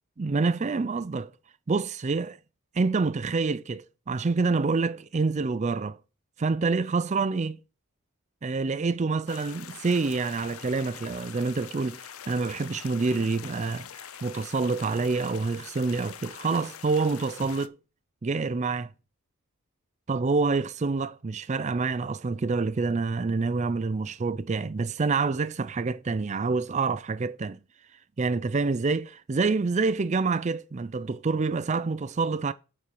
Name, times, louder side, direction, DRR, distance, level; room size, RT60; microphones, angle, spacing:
voice 1, 0.2-1.3 1.7-2.4 2.7-6.0 6.4-7.6 8.4-17.8 18.2-18.9 20.1-27.6 28.2-32.5, right 4 dB, 35° right, 0.4 m, -27 dB
sound 1, 9.3-17.7, left 9 dB, 75° left, 0.6 m, -44 dB
9.3 x 4.5 x 6.8 m
head